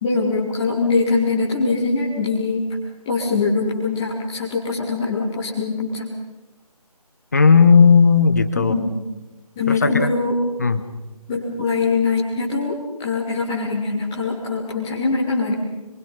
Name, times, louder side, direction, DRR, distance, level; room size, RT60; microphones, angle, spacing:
voice 1, 0.0-2.6 3.1-6.1 8.5-8.9 9.6-10.3 11.3-15.5, left 4 dB, 5° left, -6 dB, 0.8 m, -22 dB
voice 2, 7.3-8.7 9.7-10.1 10.6-10.8, left 5 dB, 25° left, 10 dB, 1.1 m, -14 dB
26.0 x 23.0 x 5.6 m, 1.1 s
figure-of-eight pair, 160°, 20 cm